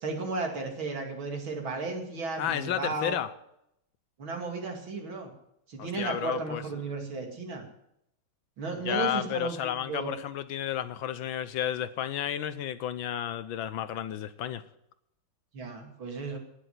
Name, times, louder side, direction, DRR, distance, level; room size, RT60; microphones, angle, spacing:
voice 1, 0.0-3.2 4.2-5.3 5.7-7.6 8.6-10.1 15.5-16.4, right 3 dB, 65° right, 2 dB, 3.4 m, -34 dB
voice 2, 2.4-3.3 5.8-6.6 8.8-14.6, left 10 dB, 70° left, 14 dB, 1.4 m, -32 dB
18.0 x 6.9 x 9.5 m, 0.78 s
omnidirectional pair, 2.4 m